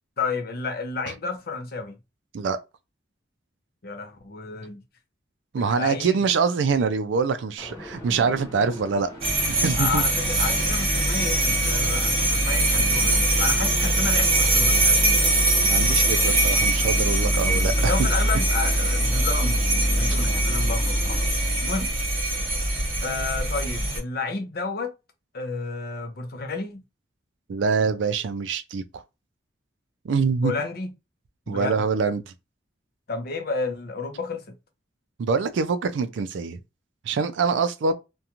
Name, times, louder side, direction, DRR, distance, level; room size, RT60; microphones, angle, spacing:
voice 1, 0.2-1.9 3.8-4.8 5.6-6.2 9.7-15.2 17.7-21.9 23.0-24.9 25.3-26.8 30.4-30.9 31.5-31.8 33.1-34.5, left 4 dB, 55° left, 0.6 m, -31 dB
voice 2, 5.5-9.1 9.4-10.0 15.5-17.9 27.5-29.0 30.0-30.5 31.5-32.2 35.2-36.6 37.1-37.9, right 5 dB, 80° right, 0.4 m, -24 dB
sound 1, 7.6-21.3, equal, 15° left, 0.8 m, -40 dB
sound 2, 9.2-24.0, right 1 dB, 30° right, 1.0 m, -22 dB
2.5 x 2.2 x 2.8 m
head